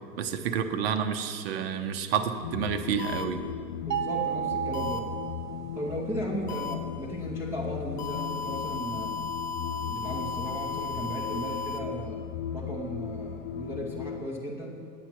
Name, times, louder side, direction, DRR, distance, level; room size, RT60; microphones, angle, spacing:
voice 1, 0.2-3.4, right 7 dB, 40° right, 8 dB, 0.8 m, -29 dB
sound 1, 2.4-14.3, left 9 dB, 60° left, 0.6 m, -37 dB
sound 2, 3.0-3.2 4.7-5.0 6.5-6.7 8.0-11.8, left 5 dB, 30° left, 0.9 m, -35 dB
voice 2, 3.8-5.1 5.7-9.2 9.8-12.2 12.5-14.9, right 1 dB, 5° right, -3 dB, 0.7 m, -36 dB
sound 3, 3.9-6.1, right 10 dB, 90° right, 1.6 m, -33 dB
9.3 x 8.4 x 6.0 m, 2.2 s
hypercardioid pair, 130°, 49 cm